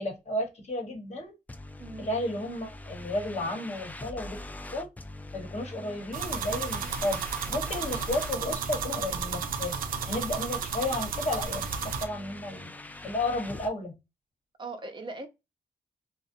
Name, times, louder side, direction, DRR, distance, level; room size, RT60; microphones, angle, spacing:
voice 1, 0.0-1.3 2.0-4.4 4.7-4.9 5.3-9.8 10.1-12.7 13.0-13.9, left 1 dB, 50° left, 1.0 m, -33 dB
sound 1, 1.5-13.7, left 2 dB, 10° left, 0.3 m, -43 dB
sound 2, 6.1-12.0, right 6 dB, 85° right, 0.4 m, -33 dB
voice 2, 14.6-15.3, right 2 dB, 35° right, 0.6 m, -39 dB
2.4 x 2.1 x 2.5 m
cardioid pair, 65°, 14 cm